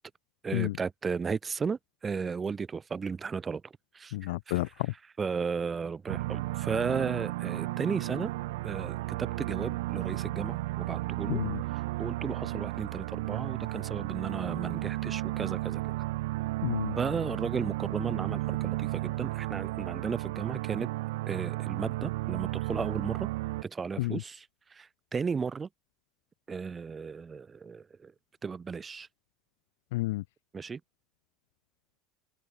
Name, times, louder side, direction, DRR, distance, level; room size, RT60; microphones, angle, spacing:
voice 1, 0.4-3.6 3.9-4.1 4.5-4.6 5.2-8.3 8.6-11.4 12.0-15.8 17.0-20.9 21.3-23.3 23.6-24.5 24.7-25.7 26.5-28.1 28.4-29.1 30.5-30.8, right 5 dB, 15° right, 0.4 m, -34 dB
voice 2, 4.1-4.9 11.3-11.6 16.6-17.0 24.0-24.2 29.9-30.2, left 19 dB, 85° left, 0.4 m, -31 dB
sound 1, 6.1-23.6, right 19 dB, 90° right, 0.5 m, -33 dB
cardioid pair, 170°, 0 cm